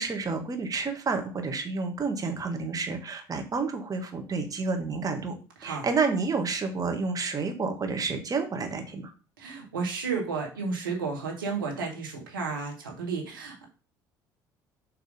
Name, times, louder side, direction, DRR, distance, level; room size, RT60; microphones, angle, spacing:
voice 1, 0.0-5.3 5.6-9.1, right 4 dB, 35° right, 5 dB, 1.8 m, -30 dB
voice 2, 9.4-13.7, right 4 dB, 85° right, 0 dB, 1.9 m, -32 dB
6.7 x 3.6 x 5.2 m, 0.34 s
figure-of-eight pair, 55°, 11 cm